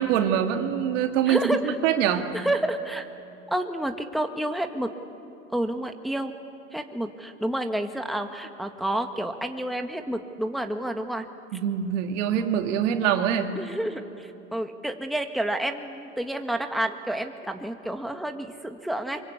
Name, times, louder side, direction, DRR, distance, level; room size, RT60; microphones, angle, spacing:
voice 1, 0.0-1.6 1.8-2.3 11.5-13.6, right 9 dB, 75° right, 5 dB, 2.3 m, -24 dB
voice 2, 1.3-1.7 2.3-3.1 3.5-4.9 5.5-6.3 6.7-11.3 13.5-19.2, right 1 dB, ahead, 5 dB, 1.6 m, -29 dB
24.5 x 23.5 x 8.5 m, 2.8 s
hypercardioid pair, 95°, 38 cm